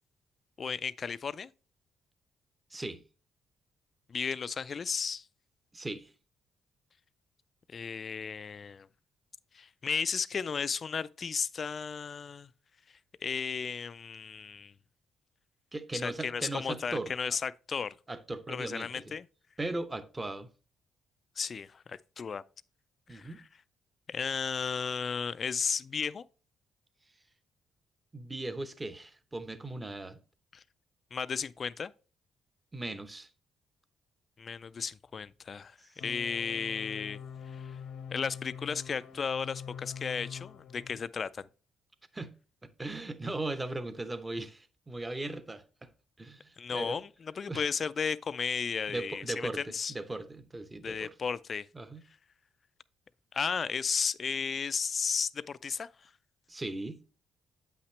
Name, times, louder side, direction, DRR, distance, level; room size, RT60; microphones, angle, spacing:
voice 1, 0.6-1.5 4.1-5.3 7.7-8.9 9.5-12.5 13.2-14.7 15.9-18.0 18.5-19.2 21.4-22.4 23.1-23.3 24.1-26.2 30.5-30.6 31.1-31.9 34.4-37.2 37.5-37.8 38.1-41.5 46.6-49.9 50.8-51.7 53.3-56.1, left 6 dB, 45° left, 0.3 m, -34 dB
voice 2, 2.7-3.0 5.7-6.1 15.7-17.1 18.1-19.2 19.6-20.5 23.1-23.4 28.1-30.2 32.7-33.3 42.1-42.3 42.6-45.6 46.2-47.0 47.5-47.7 48.9-51.1 51.7-52.0 56.5-57.0, right 2 dB, 20° right, 0.8 m, -38 dB
sound 1, 36.0-41.0, left 7 dB, 75° left, 0.8 m, -44 dB
8.0 x 5.8 x 3.2 m
cardioid pair, 90°, 0 cm